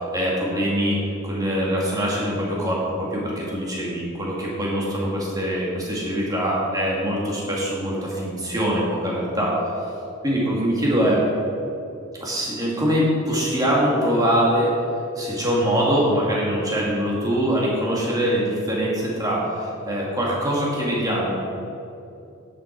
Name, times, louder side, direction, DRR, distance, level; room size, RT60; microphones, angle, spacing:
voice 1, 0.0-9.5 10.2-11.2 12.2-14.8 15.2-21.3, equal, 15° right, -4 dB, 2.0 m, -23 dB
10.0 x 7.7 x 4.6 m, 2.7 s
head